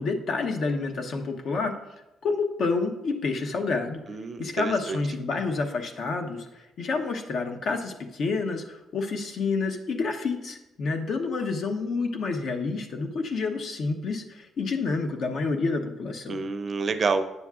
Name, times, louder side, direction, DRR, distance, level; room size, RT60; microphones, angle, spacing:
voice 1, 0.0-1.8 2.2-4.0 4.4-16.4, left 4 dB, 60° left, 4 dB, 0.9 m, -29 dB
voice 2, 4.1-5.0 16.3-17.3, right 4 dB, 45° right, 10 dB, 0.5 m, -28 dB
9.3 x 7.0 x 2.4 m, 0.96 s
cardioid pair, 90°, 0 cm